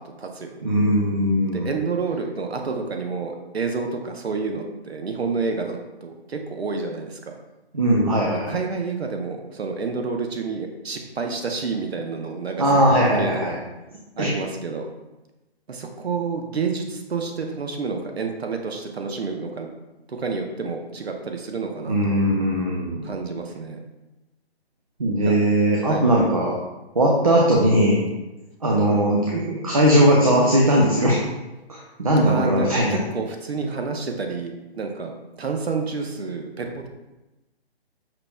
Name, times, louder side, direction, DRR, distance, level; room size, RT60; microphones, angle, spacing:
voice 1, 0.0-0.6 1.5-7.3 8.5-12.8 13.2-13.6 14.2-14.9 15.7-19.7 20.1-22.2 23.0-23.8 25.2-25.4 25.8-26.1 32.2-36.9, right 4 dB, 75° right, 4 dB, 0.6 m, -29 dB
voice 2, 0.6-1.7 7.7-8.6 12.6-13.6 14.2-14.4 21.9-23.0 25.0-26.6 27.0-28.0 28.6-31.2 31.7-33.0, right 1 dB, 35° right, -2 dB, 0.4 m, -19 dB
5.7 x 3.3 x 2.2 m, 1.0 s
figure-of-eight pair, 145°, 32 cm